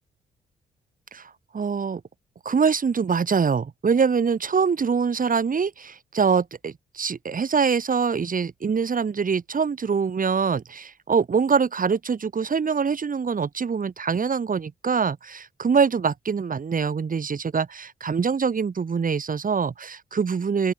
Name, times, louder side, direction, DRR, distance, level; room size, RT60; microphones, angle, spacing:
voice 1, 1.1-2.0 2.4-20.7, right 6 dB, 45° right, 2.6 m, -24 dB
open air
hypercardioid pair, 45°, 20 cm